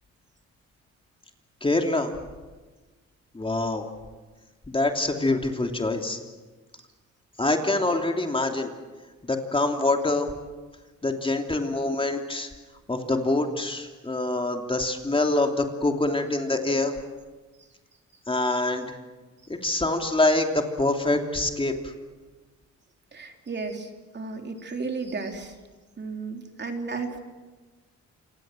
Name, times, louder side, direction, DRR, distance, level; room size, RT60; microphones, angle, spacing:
voice 1, 1.6-2.1 3.3-3.8 4.7-6.2 7.4-8.7 9.3-10.3 11.0-12.5 12.9-16.9 18.3-18.9 19.6-21.7, left 2 dB, 15° left, 4 dB, 3.0 m, -25 dB
voice 2, 23.1-25.6 26.0-27.2, right 4 dB, 35° right, 4 dB, 3.5 m, -34 dB
27.5 x 25.0 x 7.7 m, 1.3 s
cardioid pair, 90°, 30 cm